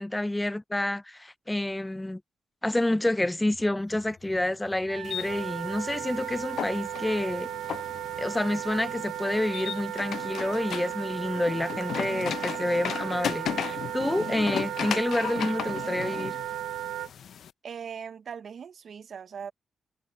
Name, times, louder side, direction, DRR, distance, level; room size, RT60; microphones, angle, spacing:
voice 1, 0.0-2.2 2.6-7.5 8.2-16.4, left 1 dB, 15° left, 0.5 m, -28 dB
sound 1, 3.5-9.1, left 5 dB, 50° left, 5.3 m, -55 dB
Wind instrument woodwind instrument, 4.9-17.1, right 13 dB, 85° right, 0.7 m, -35 dB
sound 2, 5.0-17.5, left 9 dB, 70° left, 0.7 m, -36 dB
voice 2, 17.6-19.5, right 7 dB, 65° right, 1.0 m, -40 dB
supercardioid pair, 45°, 0 cm